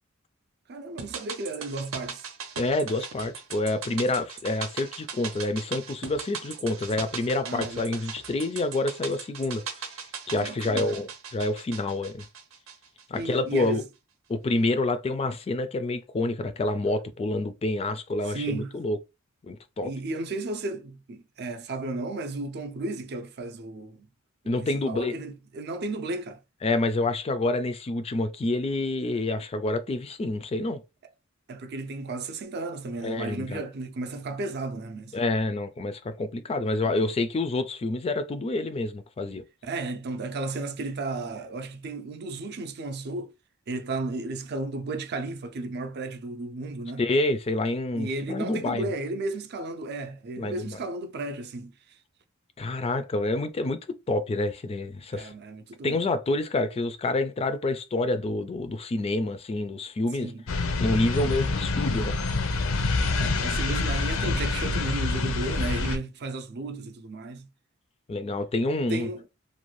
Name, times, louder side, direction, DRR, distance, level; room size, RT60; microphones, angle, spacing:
voice 1, 0.7-2.3 7.4-7.9 10.3-11.0 13.1-13.9 18.2-18.8 19.8-24.1 24.5-26.4 31.5-35.2 36.8-37.1 39.6-43.3 43.7-47.1 47.9-52.0 55.1-56.0 60.2-60.4 63.1-67.5 68.9-69.3, right 2 dB, 55° right, 0.5 m, -34 dB
sound 1, 1.0-13.3 13.6-13.7, right 6 dB, 90° right, 0.7 m, -39 dB
voice 2, 2.6-9.9 10.3-12.2 13.1-13.8 14.3-19.0 19.5-19.9 24.5-25.1 26.6-30.8 33.0-33.6 35.1-39.4 47.0-48.9 50.4-50.8 52.6-55.3 55.8-60.3 60.8-62.2 68.1-69.1, left 2 dB, 30° left, 0.3 m, -28 dB
sound 2, 60.5-66.0, left 3 dB, 80° left, 0.5 m, -26 dB
2.6 x 2.2 x 3.0 m
head